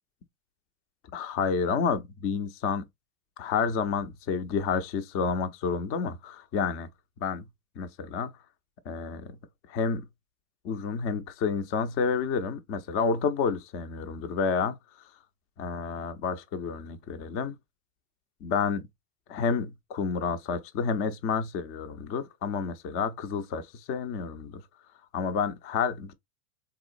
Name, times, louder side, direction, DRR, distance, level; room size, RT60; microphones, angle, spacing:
voice 1, 1.1-2.9 3.4-6.9 7.2-7.5 7.8-8.3 8.9-9.4 9.7-10.1 10.6-14.8 15.6-17.5 18.4-18.9 19.3-24.6 25.1-26.1, left 5 dB, 30° left, 0.5 m, -29 dB
3.8 x 2.4 x 2.5 m
hypercardioid pair, 120°, 49 cm